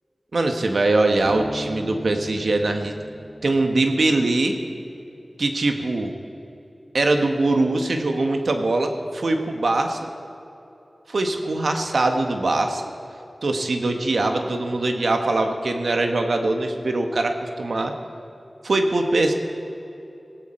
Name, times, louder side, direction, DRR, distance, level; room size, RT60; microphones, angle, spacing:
voice 1, 0.3-2.9 3.4-4.6 5.4-6.1 6.9-10.1 11.1-12.8 13.4-17.9 18.6-19.3, right 2 dB, 80° right, 4 dB, 1.4 m, -22 dB
Bass guitar, 1.2-4.7, equal, 20° right, 1.4 m, -37 dB
18.5 x 16.5 x 4.5 m, 2.9 s
wide cardioid pair, 60°, 0 cm